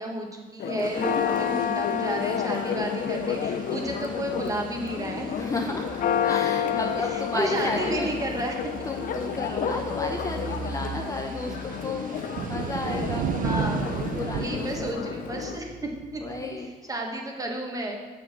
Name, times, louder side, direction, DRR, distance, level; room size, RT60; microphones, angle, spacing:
voice 1, 0.0-5.3 7.0-8.7 13.4-13.9 14.3-16.4 16.9-18.0, right 1 dB, 20° right, 1 dB, 1.6 m, -32 dB
Church bell, 0.6-15.6, left 8 dB, 55° left, 0.7 m, -30 dB
sound 1, 0.8-14.9, right 7 dB, 55° right, 0.8 m, -37 dB
voice 2, 3.7-4.3 5.4-8.1 8.8-12.1 12.5-14.7 14.9-15.4 16.2-16.7, left 2 dB, 20° left, 2 dB, 0.7 m, -33 dB
sound 2, 3.8-16.5, right 4 dB, 80° right, 2.2 m, -44 dB
7.8 x 6.4 x 6.0 m, 1.4 s
cardioid pair, 110°, 17 cm